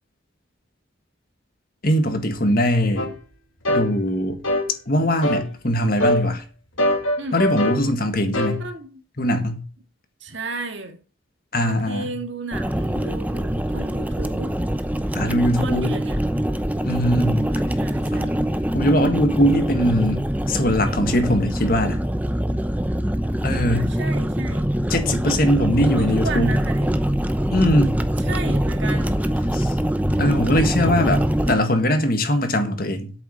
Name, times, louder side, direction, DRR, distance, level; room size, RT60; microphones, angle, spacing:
voice 1, 1.8-3.1 3.7-4.4 4.9-6.4 7.3-8.6 9.2-9.6 11.5-12.1 15.1-15.9 16.8-17.5 18.1-18.3 18.7-22.0 23.4-23.9 24.9-26.5 27.5-28.0 29.5-29.7 30.2-33.1, equal, 45° left, 1.8 m, -21 dB
sound 1, 3.0-3.1 3.7-3.9 4.4-4.7 5.2-5.5 6.0-6.3 6.8-7.8 8.3-8.6, left 1 dB, 80° left, 2.2 m, -22 dB
voice 2, 8.6-9.0 10.2-11.0 11.6-14.6 15.5-16.2 17.8-18.3 23.7-24.7 25.8-26.9 28.2-29.2, right 3 dB, 65° right, 2.1 m, -33 dB
sound 2, 12.5-31.5, equal, 10° right, 0.6 m, -23 dB
8.5 x 6.9 x 8.0 m
head